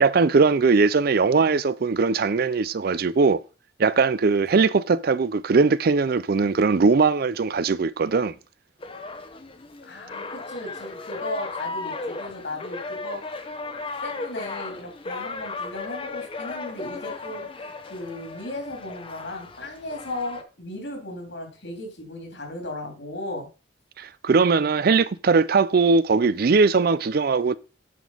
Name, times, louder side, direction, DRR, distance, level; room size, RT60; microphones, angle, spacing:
voice 1, 0.0-3.4 3.8-8.4 24.0-27.6, right 4 dB, 55° right, 0.4 m, -20 dB
sound 1, 8.8-20.4, left 3 dB, 30° left, 0.9 m, -36 dB
voice 2, 9.8-13.5 13.7-23.5, left 1 dB, 70° left, 2.9 m, -36 dB
9.4 x 5.1 x 5.5 m
head